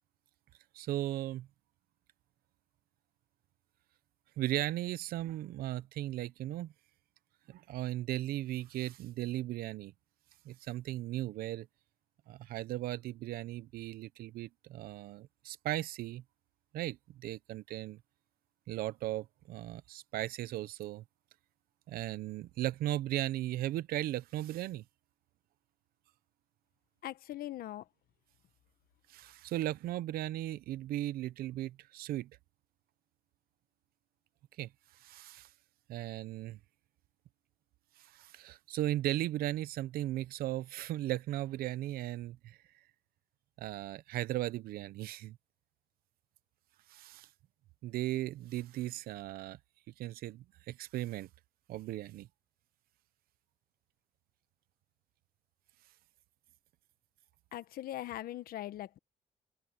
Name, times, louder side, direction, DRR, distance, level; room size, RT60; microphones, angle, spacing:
voice 1, 0.7-1.5 4.4-6.7 7.5-9.9 10.4-11.7 12.3-16.2 16.7-18.0 18.7-21.0 21.9-24.8 29.1-32.3 34.6-34.7 35.0-35.5 35.9-36.6 38.0-42.6 43.6-45.4 46.9-47.3 47.8-49.6 50.0-51.3 51.7-52.3, right 14 dB, 80° right, 0.8 m, -37 dB
voice 2, 27.0-27.8 57.5-59.0, left 13 dB, 75° left, 1.3 m, -41 dB
supercardioid pair, 65°, 15 cm